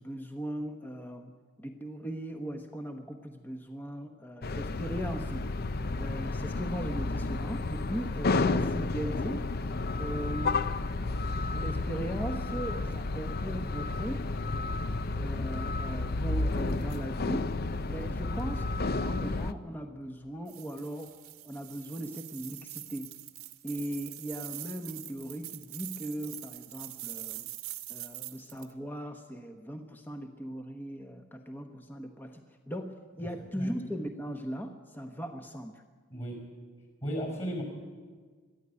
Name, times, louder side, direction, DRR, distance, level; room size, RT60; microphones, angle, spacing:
voice 1, 0.0-5.5 6.0-9.5 10.0-10.6 11.5-14.3 15.2-17.5 17.9-21.1 21.4-23.2 23.6-27.5 27.9-35.8, equal, 10° left, 5 dB, 1.0 m, -38 dB
sound 1, 4.4-19.5, left 3 dB, 45° left, 0.7 m, -31 dB
sound 2, 20.5-28.7, right 15 dB, 85° right, 1.3 m, -44 dB
voice 2, 33.2-33.7 36.1-36.5 37.0-37.6, equal, 30° left, 2 dB, 5.3 m, -36 dB
22.0 x 13.0 x 9.8 m, 1.5 s
head